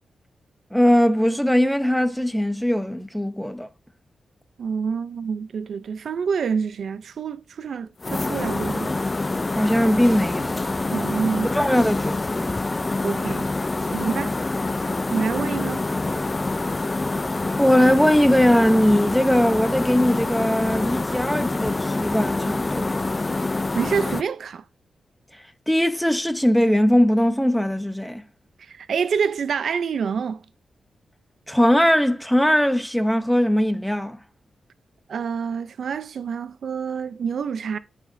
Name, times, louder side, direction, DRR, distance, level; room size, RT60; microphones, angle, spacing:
voice 1, 0.7-3.7 9.5-10.6 11.5-12.5 17.6-23.0 25.7-28.2 31.5-34.2, equal, ahead, 0.9 m, -20 dB
voice 2, 4.6-8.9 10.9-11.9 13.0-13.5 13.9-14.4 15.1-15.8 23.7-24.6 28.6-30.4 35.1-37.8, right 6 dB, 75° right, 0.6 m, -27 dB
sound 1, 8.0-24.2, left 2 dB, 30° left, 0.5 m, -26 dB
13.0 x 5.0 x 2.7 m
cardioid pair, 70°, 0 cm